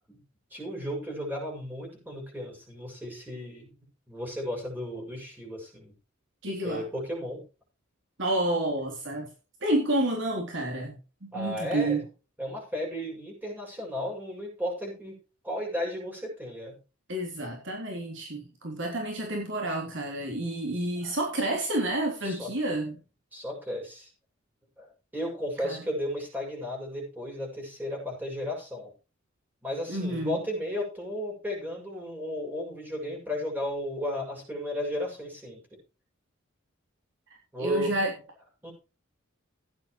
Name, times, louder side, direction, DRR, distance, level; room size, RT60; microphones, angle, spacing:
voice 1, 0.5-3.7 4.1-5.9 6.6-7.4 11.3-12.0 12.4-15.1 15.4-16.8 21.0-21.2 22.2-22.5 23.3-24.1 24.8-28.9 29.6-35.6 37.5-37.9 38.6-38.7, equal, 10° right, -1 dB, 7.1 m, -34 dB
voice 2, 6.4-6.8 8.2-9.3 9.6-12.0 17.1-23.0 25.6-25.8 29.9-30.4 37.6-38.1, right 1 dB, 65° right, 1 dB, 3.3 m, -30 dB
15.5 x 10.5 x 3.2 m, 0.33 s
head